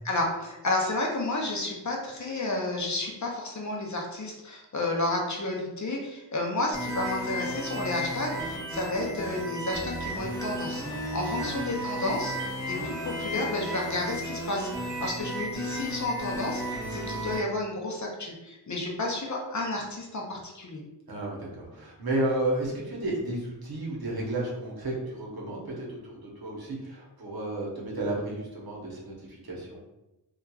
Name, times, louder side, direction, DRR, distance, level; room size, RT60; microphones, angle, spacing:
voice 1, 0.0-20.8, left 2 dB, 45° left, -1 dB, 0.6 m, -31 dB
sound 1, 6.7-17.4, equal, 5° left, 0.9 m, -34 dB
voice 2, 21.1-29.8, right 1 dB, 60° right, -3 dB, 0.8 m, -32 dB
2.8 x 2.3 x 2.3 m, 0.96 s
wide cardioid pair, 70°, 42 cm